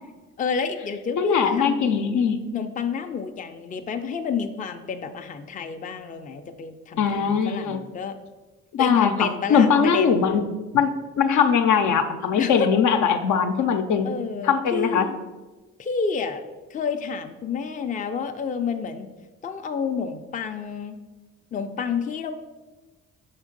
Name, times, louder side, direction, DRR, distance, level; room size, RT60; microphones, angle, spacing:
voice 1, 0.4-1.9 2.5-8.2 8.8-10.2 12.4-12.7 14.0-15.2 15.8-16.4 16.7-19.1 19.4-21.0 21.5-22.3, left 5 dB, 25° left, 6 dB, 0.4 m, -29 dB
voice 2, 1.2-2.4 7.0-7.8 8.7-9.1 9.5-10.4 10.7-10.9 11.2-14.1 14.4-15.1, left 6 dB, 75° left, 7 dB, 0.7 m, -20 dB
5.6 x 3.6 x 5.2 m, 1.2 s
cardioid pair, 90°, 30 cm